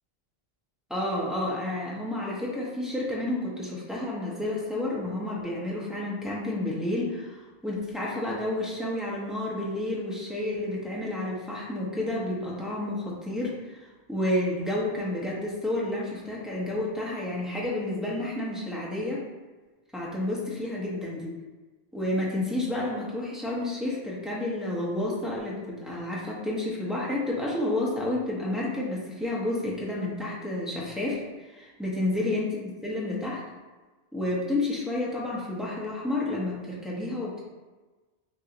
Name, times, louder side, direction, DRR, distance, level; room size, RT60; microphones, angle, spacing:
voice 1, 0.9-13.8 14.1-19.2 19.9-21.3 21.9-33.4 34.1-37.4, left 1 dB, ahead, -6 dB, 0.5 m, -30 dB
3.0 x 2.6 x 3.8 m, 1.3 s
omnidirectional pair, 1.1 m